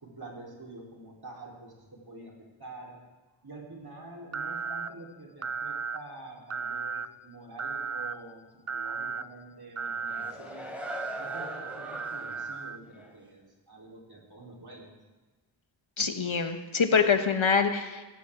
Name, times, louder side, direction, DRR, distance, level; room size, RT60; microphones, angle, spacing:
voice 1, 0.0-2.3 2.6-3.0 3.4-10.7 11.2-14.9, right 2 dB, 50° right, -2 dB, 4.1 m, -47 dB
sound 1, 4.3-4.9 5.4-6.0 6.5-7.1 7.6-8.1 8.7-9.2 9.8-10.3 10.8-12.8, right 5 dB, 35° right, 0.5 m, -35 dB
sound 2, 9.8-12.5 13.0-13.1, equal, 5° right, 3.7 m, -41 dB
voice 2, 16.0-18.0, left 5 dB, 75° left, 7 dB, 1.2 m, -25 dB
17.5 x 15.5 x 3.8 m, 1.2 s
wide cardioid pair, 70°, 48 cm